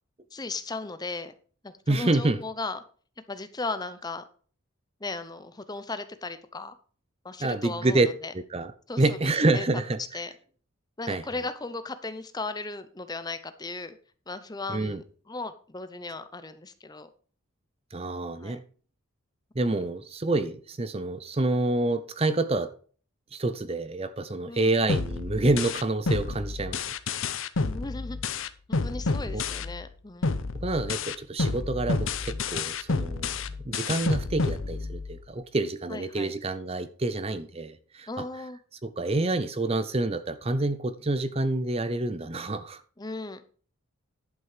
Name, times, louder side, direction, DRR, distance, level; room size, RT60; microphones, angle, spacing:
voice 1, 0.3-1.3 1.6-2.8 3.3-4.2 5.0-6.7 7.2-8.3 8.9-9.2 9.5-9.6 10.1-10.3 11.0-14.0 14.3-17.1 18.4-18.6 24.5-24.8 27.6-28.4 28.7-30.4 35.9-36.3 38.1-38.6 43.0-43.4, left 3 dB, 20° left, 0.7 m, -36 dB
voice 2, 1.9-2.4 7.4-8.1 8.5-8.7 9.0-10.0 11.1-11.2 14.7-15.0 17.9-18.6 19.6-22.7 23.3-26.8 29.3-29.4 30.5-33.3 33.6-38.1 38.8-42.8, right 2 dB, 25° right, 0.6 m, -27 dB
sound 1, 24.9-29.9 30.2-35.3, left 4 dB, 65° left, 0.7 m, -30 dB
11.0 x 6.1 x 5.0 m
head